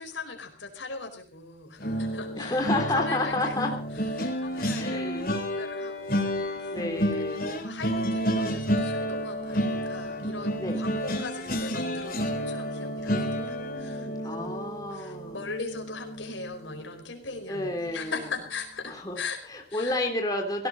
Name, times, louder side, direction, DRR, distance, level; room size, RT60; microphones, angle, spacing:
voice 1, 0.0-6.8 7.5-14.6 14.9-19.4 19.7-20.0, left 4 dB, 85° left, 5 dB, 4.9 m, -40 dB
sound 1, 1.8-16.9 17.3-17.6 17.9-18.1, equal, 50° left, 3.8 m, -30 dB
voice 2, 2.4-3.8 4.8-5.4 6.7-7.6 10.6-10.9 13.1-15.4 17.5-18.1 18.9-19.2 19.5-20.7, left 2 dB, 20° left, 2 dB, 3.2 m, -31 dB
17.5 x 17.5 x 4.1 m, 0.37 s
head